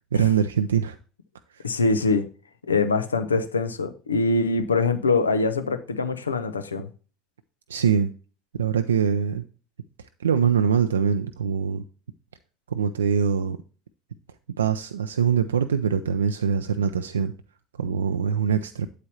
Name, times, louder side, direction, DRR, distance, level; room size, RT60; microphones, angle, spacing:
voice 1, 0.1-1.0 7.7-8.1 8.5-9.4 10.2-11.8 12.7-13.6 14.6-17.3 17.8-18.9, right 7 dB, 80° right, 8 dB, 0.4 m, -23 dB
voice 2, 1.6-2.2 2.7-6.9, left 3 dB, 85° left, 10 dB, 0.7 m, -23 dB
8.6 x 8.2 x 2.9 m, 0.37 s
figure-of-eight pair, 65°, 0 cm